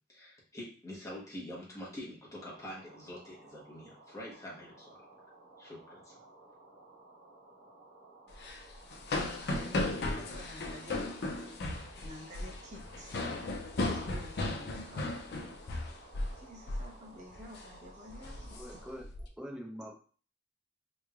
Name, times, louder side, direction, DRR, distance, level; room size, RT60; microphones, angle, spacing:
voice 1, 0.1-5.0 5.6-6.2, left 1 dB, 20° left, -4 dB, 1.2 m, -46 dB
sound 1, 2.3-18.9, right 2 dB, 65° right, 1.4 m, -57 dB
sound 2, 8.3-16.4 16.7-16.9 17.3-17.6 18.1-19.2, left 2 dB, 60° left, 0.5 m, -36 dB
voice 2, 9.5-11.0 12.0-13.2 13.9-15.1 16.2-18.8, left 1 dB, 40° right, -3 dB, 0.9 m, -50 dB
voice 3, 18.5-20.0, equal, 5° right, -1 dB, 0.7 m, -45 dB
3.6 x 3.1 x 2.4 m, 0.40 s
head